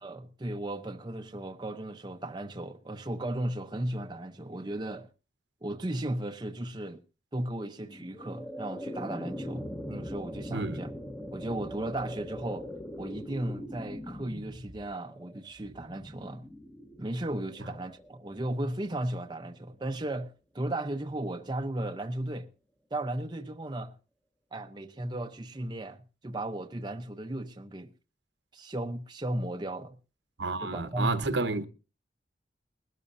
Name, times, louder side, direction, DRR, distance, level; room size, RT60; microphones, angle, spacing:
voice 1, 0.0-5.1 5.6-7.0 7.3-10.9 11.3-12.7 13.0-16.5 17.0-22.5 22.9-24.0 24.5-27.9 28.5-30.0 30.6-31.1, right 1 dB, 25° right, 0.7 m, -35 dB
sound 1, 7.8-18.9, equal, 10° left, 1.0 m, -41 dB
voice 2, 10.5-10.8 30.4-31.6, right 3 dB, 75° right, 1.1 m, -30 dB
21.0 x 12.5 x 2.6 m
head